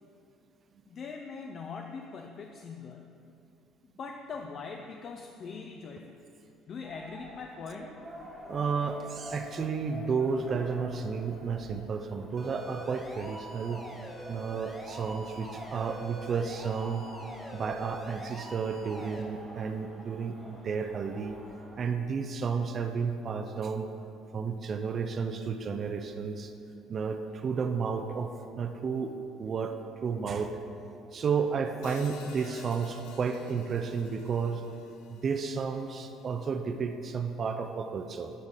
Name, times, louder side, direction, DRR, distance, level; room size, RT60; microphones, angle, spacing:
voice 1, 0.9-3.2 4.0-6.2 6.7-8.0, left 5 dB, 40° left, 3 dB, 0.4 m, -42 dB
sound 1, 6.8-21.8, right 1 dB, 20° right, 1.0 m, -48 dB
voice 2, 8.5-13.8 14.3-17.1 17.5-21.4 21.8-23.9 24.3-26.5 26.9-29.7 30.0-30.5 31.1-34.6 35.1-38.3, right 5 dB, 35° right, 6 dB, 0.3 m, -32 dB
sound 2, 12.4-19.2, right 1 dB, 15° left, 0.7 m, -45 dB
Hi-hat, 31.8-36.0, left 5 dB, 85° left, 0.6 m, -49 dB
10.5 x 3.7 x 4.0 m, 2.6 s
cardioid pair, 135°, 0 cm